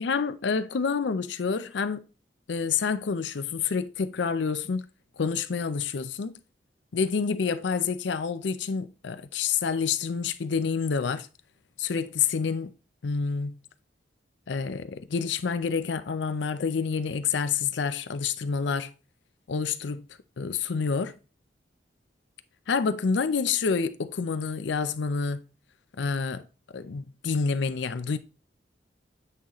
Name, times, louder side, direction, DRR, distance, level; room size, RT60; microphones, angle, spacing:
voice 1, 0.0-2.0 2.5-4.9 5.2-6.3 6.9-11.3 11.8-12.7 13.0-13.6 14.5-18.9 19.5-20.1 20.4-21.2 22.7-25.4 26.0-26.4 26.7-28.2, left 5 dB, 70° left, 0.5 m, -28 dB
8.8 x 4.0 x 2.9 m
head